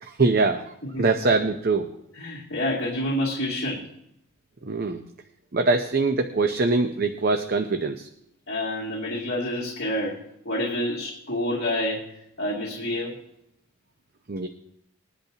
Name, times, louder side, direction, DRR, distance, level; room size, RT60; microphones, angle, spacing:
voice 1, 0.0-0.6 1.0-1.9 4.6-5.0 5.5-8.1 14.3-14.5, right 3 dB, 45° right, 6 dB, 0.7 m, -23 dB
voice 2, 2.2-3.9 8.5-10.2 10.4-13.2, left 1 dB, 55° left, -4 dB, 2.5 m, -28 dB
21.0 x 10.5 x 2.9 m, 0.76 s
head